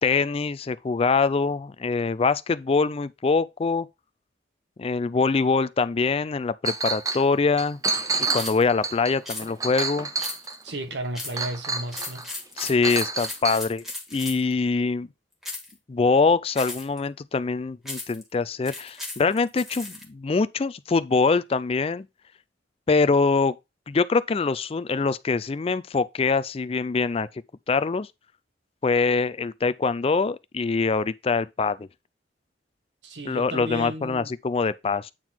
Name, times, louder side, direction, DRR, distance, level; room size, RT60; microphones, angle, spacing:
voice 1, 0.0-3.9 4.8-7.8 8.3-10.1 12.6-13.8 14.1-15.1 15.9-22.1 22.9-23.6 23.9-27.3 27.7-28.1 28.8-31.9 33.3-35.1, left 4 dB, 30° left, 0.4 m, -24 dB
Chink clink, 6.6-7.2 7.6-10.7 11.3-12.2 12.6-13.6, right 4 dB, 20° right, 0.6 m, -29 dB
sound 1, 8.3-8.6 9.3-9.5 10.2-10.6 11.1-11.4 11.9-14.5 15.4-15.7 16.6-17.0 17.9-18.2 18.7-20.0, left 2 dB, ahead, 1.9 m, -36 dB
voice 2, 10.6-12.2 33.0-34.3, right 1 dB, 65° right, 1.4 m, -34 dB
8.9 x 4.0 x 4.4 m
head